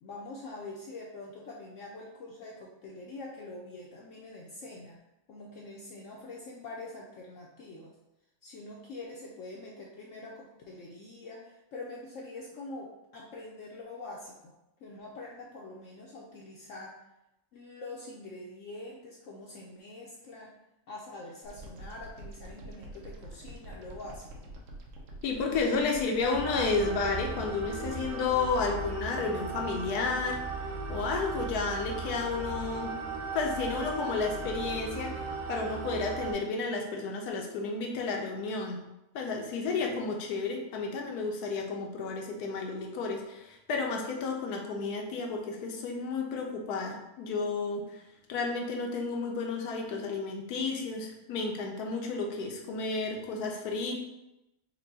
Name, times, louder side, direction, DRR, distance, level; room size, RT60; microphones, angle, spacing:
voice 1, 0.0-5.0 5.3-7.9 8.4-14.5 14.8-16.9 17.5-20.5 20.9-24.5, left 2 dB, 65° left, -3 dB, 0.8 m, -45 dB
sound 1, 21.4-28.6, right 1 dB, 80° right, 1.2 m, -46 dB
voice 2, 25.2-30.4 30.9-33.0 33.3-35.2 35.5-38.8 39.1-47.8 48.3-54.0, left 4 dB, 85° left, 1 dB, 1.2 m, -32 dB
sound 2, 26.3-36.3, right 4 dB, 65° right, 0.9 m, -37 dB
4.3 x 2.2 x 4.0 m, 0.91 s
omnidirectional pair, 1.6 m